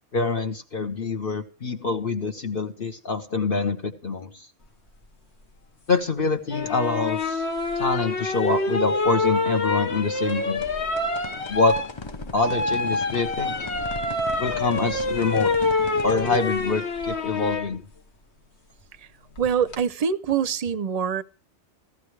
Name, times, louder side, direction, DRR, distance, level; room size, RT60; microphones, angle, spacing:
voice 1, 0.1-4.5 5.9-7.5 7.8-10.7 11.5-11.8 12.3-13.5 14.4-15.5 16.0-17.8, left 4 dB, 50° left, 1.2 m, -25 dB
sound 1, 6.5-17.7 19.4-19.8, left 2 dB, 70° left, 1.5 m, -26 dB
sound 2, 10.2-16.5, left 5 dB, 30° left, 0.6 m, -39 dB
voice 2, 19.4-21.2, right 7 dB, 40° right, 0.6 m, -24 dB
15.0 x 13.5 x 3.3 m
omnidirectional pair, 1.2 m